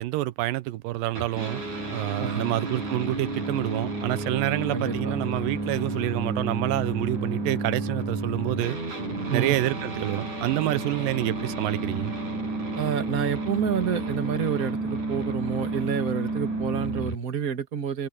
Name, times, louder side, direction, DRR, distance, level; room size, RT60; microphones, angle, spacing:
voice 1, 0.0-1.6 1.9-8.8 9.3-12.1, right 16 dB, 85° right, 2.4 m, -27 dB
sound 1, 1.1-17.1, right 2 dB, 60° right, 8.9 m, -31 dB
voice 2, 2.2-2.5 4.7-5.2 9.3-9.6 12.7-18.1, right 7 dB, 30° right, 1.9 m, -29 dB
omnidirectional pair, 3.9 m